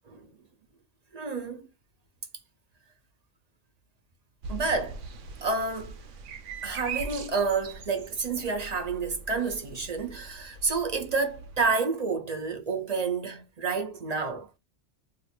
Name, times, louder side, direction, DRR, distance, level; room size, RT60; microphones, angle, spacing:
voice 1, 1.1-1.7 4.5-5.0 5.4-5.9 6.6-14.5, right 4 dB, 45° right, 0.6 m, -29 dB
sound 1, 4.4-11.7, right 4 dB, 80° right, 1.0 m, -41 dB
2.6 x 2.4 x 4.1 m
omnidirectional pair, 1.3 m